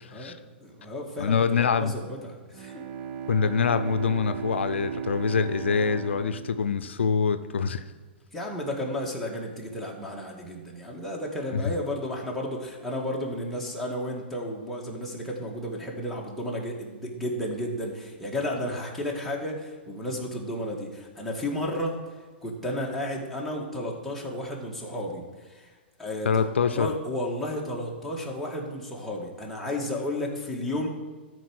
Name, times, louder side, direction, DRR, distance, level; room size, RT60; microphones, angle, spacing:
voice 1, 0.1-2.8 8.3-26.5 26.7-30.9, left 1 dB, ahead, -4 dB, 1.9 m, -33 dB
voice 2, 1.2-1.9 3.3-7.8 11.5-11.7 26.3-26.9, left 6 dB, 85° left, 11 dB, 0.5 m, -25 dB
Bowed string instrument, 2.5-7.7, right 7 dB, 50° right, 0.7 m, -36 dB
13.0 x 4.5 x 6.4 m, 1.4 s
hypercardioid pair, 125°, 6 cm